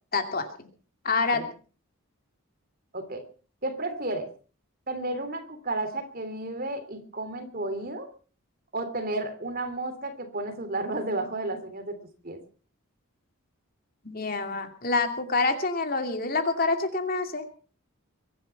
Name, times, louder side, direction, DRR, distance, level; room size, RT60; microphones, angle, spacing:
voice 1, 0.1-0.5 1.0-1.4 14.0-17.4, left 3 dB, 40° left, 6 dB, 2.6 m, -27 dB
voice 2, 3.6-4.3 4.9-8.1 8.7-12.0 12.2-12.4, right 2 dB, 40° right, 8 dB, 3.1 m, -32 dB
23.5 x 10.5 x 5.8 m, 0.40 s
head